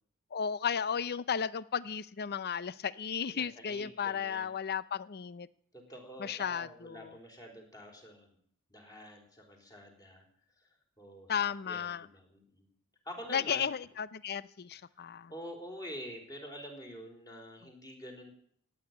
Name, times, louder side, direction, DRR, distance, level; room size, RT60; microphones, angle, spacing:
voice 1, 0.3-5.5 6.2-7.1 11.3-12.1 13.3-15.3, left 7 dB, 45° left, 19 dB, 0.6 m, -34 dB
voice 2, 3.3-4.5 5.7-8.4 8.7-10.3 10.6-10.7 11.0-12.7 13.0-13.7 15.3-18.3, equal, 15° left, 2 dB, 4.0 m, -47 dB
17.0 x 8.8 x 9.5 m, 0.62 s
head